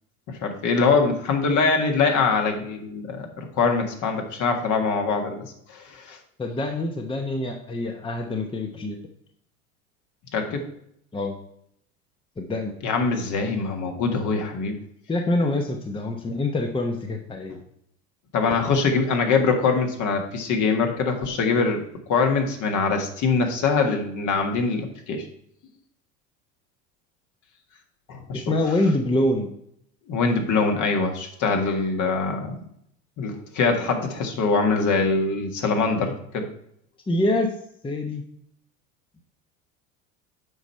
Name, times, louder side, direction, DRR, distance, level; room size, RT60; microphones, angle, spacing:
voice 1, 0.3-5.4 5.7-6.2 10.3-10.7 12.8-14.7 18.3-21.8 22.1-25.3 28.1-28.4 30.1-32.6 33.2-36.5, left 4 dB, 45° left, 4 dB, 1.7 m, -23 dB
voice 2, 6.4-9.0 11.1-11.4 12.4-12.8 15.1-17.6 18.5-18.6 28.3-29.5 37.1-37.5 37.8-38.2, left 1 dB, 10° left, 4 dB, 0.9 m, -25 dB
8.0 x 5.4 x 4.3 m, 0.72 s
hypercardioid pair, 80°, 41 cm